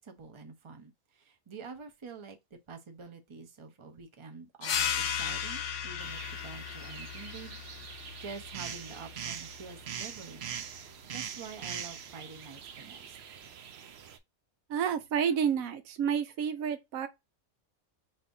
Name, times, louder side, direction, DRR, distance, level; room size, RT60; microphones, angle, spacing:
voice 1, 0.0-2.4 2.7-7.6 7.9-10.7 11.1-13.2, right 5 dB, 25° right, 0.7 m, -47 dB
sound 1, 4.6-9.8, left 8 dB, 60° left, 0.9 m, -36 dB
sound 2, 6.0-14.2, right 8 dB, 60° right, 0.7 m, -43 dB
voice 2, 14.7-17.1, right 7 dB, 85° right, 1.1 m, -30 dB
5.4 x 2.8 x 2.7 m
omnidirectional pair, 1.4 m